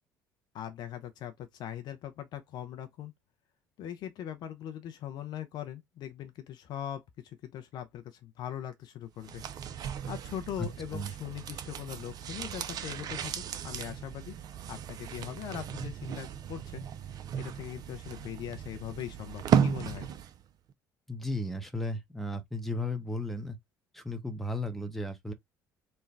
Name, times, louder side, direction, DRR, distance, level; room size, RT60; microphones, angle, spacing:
voice 1, 0.5-3.1 3.8-14.3 14.7-20.1, left 10 dB, 45° left, 0.5 m, -41 dB
sound 1, 9.2-20.4 20.7-20.8, right 8 dB, 40° right, 0.5 m, -35 dB
voice 2, 21.1-23.6 23.9-25.3, left 1 dB, ahead, 0.8 m, -34 dB
3.3 x 2.2 x 3.2 m
figure-of-eight pair, 55°, 10 cm